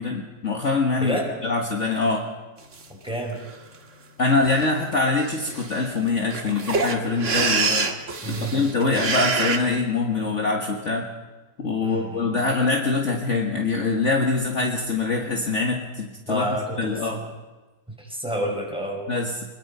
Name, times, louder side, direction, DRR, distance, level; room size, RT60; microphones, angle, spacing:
voice 1, 0.0-1.2 1.4-2.3 4.2-7.9 8.3-11.1 11.6-16.5 16.8-17.2 19.1-19.4, left 3 dB, 45° left, 1 dB, 1.8 m, -24 dB
voice 2, 1.0-1.3 2.9-3.4 8.2-9.1 11.8-12.4 16.2-17.3 18.0-19.1, equal, 5° right, 0 dB, 4.7 m, -30 dB
sound 1, 2.7-2.8 3.3-3.8 4.4-4.7 4.9-5.0 5.2-9.6, right 4 dB, 45° right, 1.9 m, -26 dB
23.0 x 21.5 x 5.5 m, 1.2 s
omnidirectional pair, 1.8 m